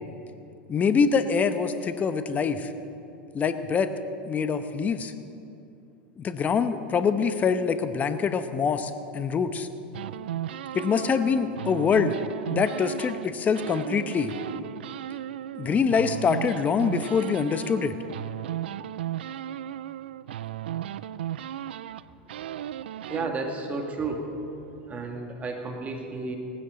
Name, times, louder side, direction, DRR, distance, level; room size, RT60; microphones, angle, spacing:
voice 1, 0.7-2.7 3.3-3.9 4.3-5.1 6.2-9.7 10.7-12.2 12.5-14.3 15.5-17.9, left 6 dB, 30° left, 10 dB, 0.9 m, -25 dB
sound 1, 9.9-13.3 13.6-23.3, right 11 dB, 80° right, 0.3 m, -35 dB
voice 2, 23.1-24.3 24.9-26.4, right 3 dB, 25° right, 2 dB, 2.2 m, -32 dB
18.0 x 15.5 x 3.9 m, 2.6 s
hypercardioid pair, 95°, 6 cm